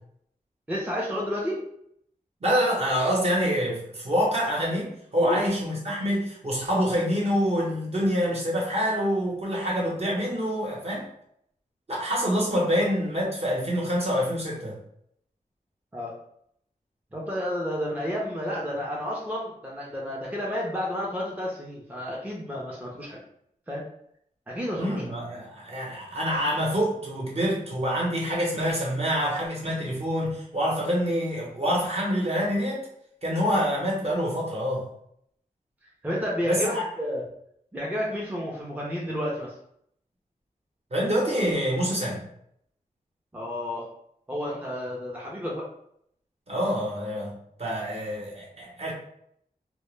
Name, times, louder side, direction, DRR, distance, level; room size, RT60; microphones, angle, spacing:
voice 1, 0.7-1.6 5.2-5.5 15.9-16.2 17.1-23.2 23.7-23.8 24.5-25.0 36.0-37.2 37.7-39.6 43.3-43.9 44.3-45.7, equal, 10° right, -4 dB, 0.5 m, -31 dB
voice 2, 2.4-11.1 11.9-14.8 24.8-32.9 33.2-34.9 36.5-36.8 40.9-42.2 46.5-48.9, equal, 45° right, -4 dB, 0.8 m, -26 dB
2.1 x 2.0 x 3.1 m, 0.72 s
wide cardioid pair, 80°, 15 cm